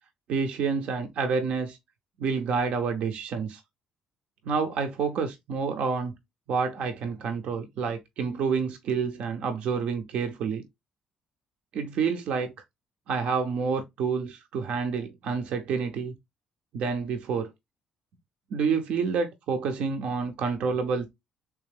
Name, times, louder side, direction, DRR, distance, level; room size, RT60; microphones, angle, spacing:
voice 1, 0.3-1.8 2.2-3.6 4.4-6.2 6.5-10.6 11.7-12.5 13.1-16.1 16.7-17.5 18.5-21.1, right 5 dB, 70° right, 0.6 m, -28 dB
3.4 x 3.1 x 3.3 m
supercardioid pair, 70°, 2 cm